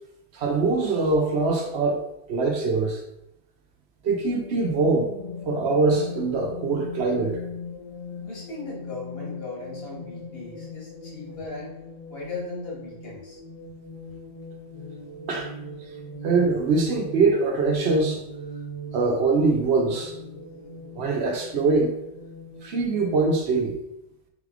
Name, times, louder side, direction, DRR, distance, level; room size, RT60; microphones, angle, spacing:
voice 1, 0.3-3.0 4.0-5.1 5.5-7.4 15.3-15.5 16.2-18.2 18.9-20.1 21.0-21.9 22.6-23.8, right 3 dB, 75° right, 2 dB, 1.0 m, -23 dB
sound 1, 4.3-23.4, left 1 dB, 40° left, 0.8 m, -40 dB
voice 2, 8.2-11.7 12.1-13.4, left 3 dB, 60° left, -4 dB, 1.7 m, -37 dB
4.0 x 3.3 x 3.7 m, 0.82 s
omnidirectional pair, 1.1 m